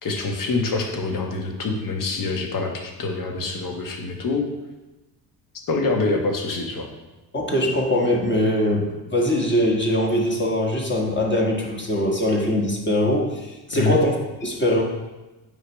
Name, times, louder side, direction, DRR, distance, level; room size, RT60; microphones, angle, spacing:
voice 1, 0.0-4.4 5.7-6.9 13.7-14.0, left 3 dB, 40° left, 3 dB, 1.3 m, -25 dB
voice 2, 7.3-14.1 14.4-14.8, left 1 dB, 20° left, -1 dB, 1.5 m, -22 dB
9.1 x 3.4 x 3.1 m, 1.1 s
hypercardioid pair, 55°, 49 cm